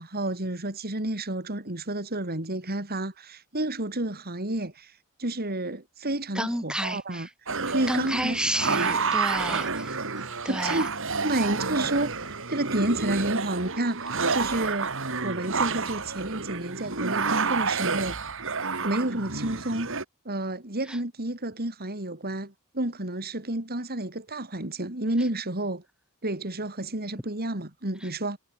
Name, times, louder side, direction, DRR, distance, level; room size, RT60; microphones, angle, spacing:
voice 1, 0.0-7.3 7.7-8.4 9.0-9.9 10.5-10.9 11.2-14.9 15.2-18.5 18.8-19.9 20.2-25.8 26.2-28.4, right 1 dB, 45° right, 4.2 m, -30 dB
voice 2, 6.3-7.3 7.7-10.9 20.9-21.0 28.0-28.1, right 1 dB, 5° right, 7.4 m, -31 dB
sound 1, 7.5-20.0, right 4 dB, 65° right, 7.4 m, -29 dB
head